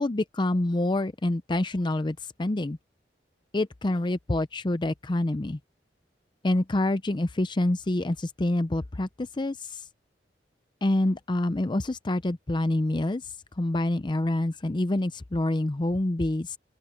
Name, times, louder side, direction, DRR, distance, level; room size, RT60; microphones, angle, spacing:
voice 1, 0.0-2.8 3.5-5.6 6.4-9.8 10.8-16.6, left 1 dB, 25° left, 0.6 m, -27 dB
open air
head